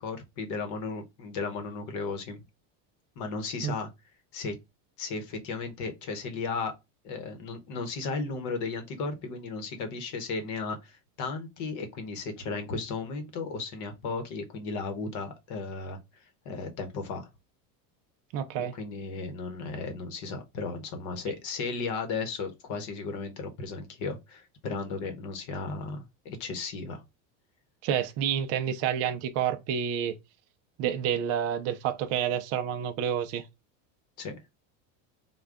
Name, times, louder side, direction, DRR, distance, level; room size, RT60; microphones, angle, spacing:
voice 1, 0.0-2.4 3.2-3.9 4.3-4.5 5.0-6.7 7.0-16.0 16.4-17.3 18.5-27.0 34.2-34.3, left 4 dB, 45° left, 0.9 m, -35 dB
voice 2, 18.3-18.7 27.8-30.1 30.8-33.4, right 9 dB, 40° right, 0.4 m, -29 dB
3.7 x 2.3 x 3.4 m
cardioid pair, 160°, 40 cm